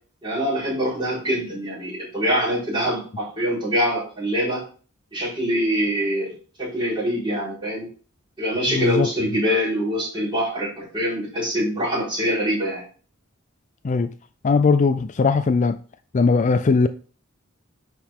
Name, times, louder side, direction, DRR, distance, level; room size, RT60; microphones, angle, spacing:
voice 1, 0.2-4.6 5.1-6.3 6.6-7.9 8.4-12.8, equal, 25° right, 4.7 m, -24 dB
voice 2, 8.7-9.1 13.8-14.1 14.4-15.8 16.1-16.9, left 4 dB, 35° left, 0.4 m, -19 dB
10.0 x 4.8 x 3.6 m
head